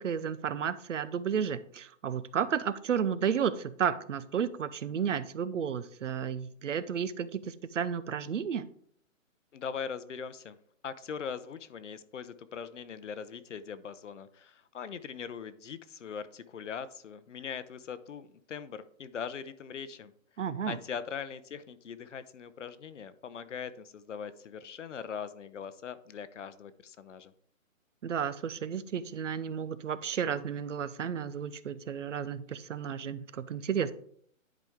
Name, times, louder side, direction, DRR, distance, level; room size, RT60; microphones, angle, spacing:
voice 1, 0.0-8.7 20.4-20.8 28.0-33.9, right 7 dB, 65° right, 15 dB, 0.7 m, -32 dB
voice 2, 9.5-10.6 10.8-20.1 20.7-27.3, left 7 dB, 65° left, 14 dB, 0.8 m, -41 dB
10.5 x 5.0 x 3.6 m, 0.63 s
hypercardioid pair, 170°, 40 cm